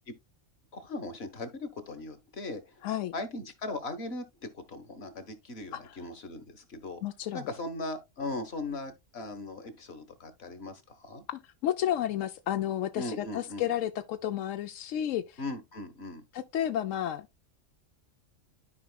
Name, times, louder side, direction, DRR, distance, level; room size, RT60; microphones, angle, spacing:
voice 1, 0.7-2.8 3.1-7.0 7.3-11.2 12.9-13.6 15.4-16.2, left 2 dB, 55° left, 1.5 m, -39 dB
voice 2, 2.8-3.1 5.7-5.9 7.0-7.5 11.3-15.4 16.3-17.3, left 11 dB, 90° left, 1.0 m, -32 dB
13.0 x 5.0 x 2.2 m
omnidirectional pair, 1.3 m